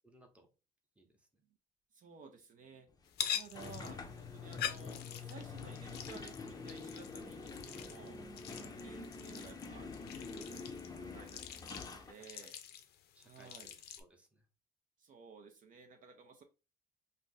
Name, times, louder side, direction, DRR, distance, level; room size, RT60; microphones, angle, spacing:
voice 1, 0.0-0.5 1.0-1.4 8.5-8.8 11.7-12.5 13.1-14.5, right 1 dB, 5° right, 3 dB, 0.8 m, -63 dB
voice 2, 1.9-2.9 3.3-8.2 8.5-12.5 13.2-13.7 15.0-16.4, right 5 dB, 50° right, 5 dB, 0.5 m, -55 dB
sound 1, 3.1-14.0, left 10 dB, 70° left, 0.5 m, -45 dB
sound 2, 3.5-12.1, left 4 dB, 20° left, 0.5 m, -46 dB
2.6 x 2.5 x 3.8 m, 0.30 s
cardioid pair, 110°, 17 cm